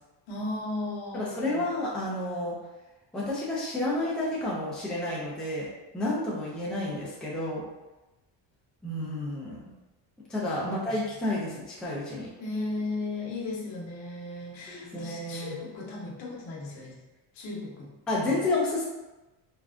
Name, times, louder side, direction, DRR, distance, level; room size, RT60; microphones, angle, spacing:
voice 1, 0.3-1.7 10.5-11.0 12.4-17.0 17.3-17.9 18.2-18.4, left 2 dB, 75° left, -2 dB, 1.0 m, -36 dB
voice 2, 1.1-2.6 3.1-5.7 5.9-7.6 8.8-9.7 10.3-12.3 14.7-15.5 18.1-18.8, left 2 dB, ahead, -6 dB, 0.5 m, -30 dB
3.5 x 2.2 x 2.5 m, 1.1 s
cardioid pair, 120°, 47 cm